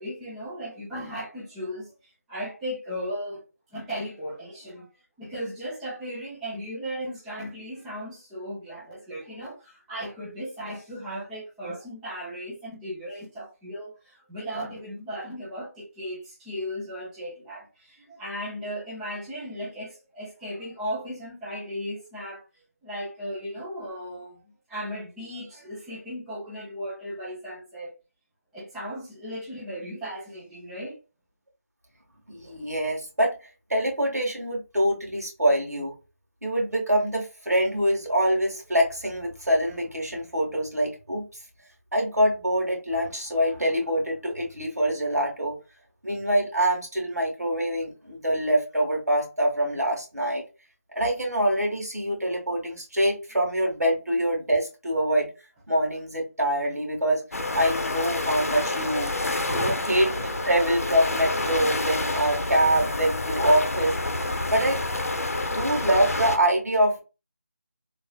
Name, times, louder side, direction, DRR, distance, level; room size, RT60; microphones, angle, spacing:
voice 1, 0.0-1.9 2.3-3.4 3.7-4.9 5.2-22.4 22.8-24.4 24.7-27.9 28.5-31.0 59.1-59.9, equal, 5° right, 0.3 m, -36 dB
voice 2, 32.3-33.3 33.7-35.9 36.4-41.2 41.9-45.6 46.0-50.4 50.9-55.3 55.7-57.2 57.5-59.1 59.5-63.9 64.5-64.8 65.5-67.0, equal, 85° right, 1.7 m, -25 dB
sound 1, 57.3-66.4, left 2 dB, 65° left, 0.6 m, -28 dB
3.2 x 2.5 x 2.3 m
figure-of-eight pair, 160°, 8 cm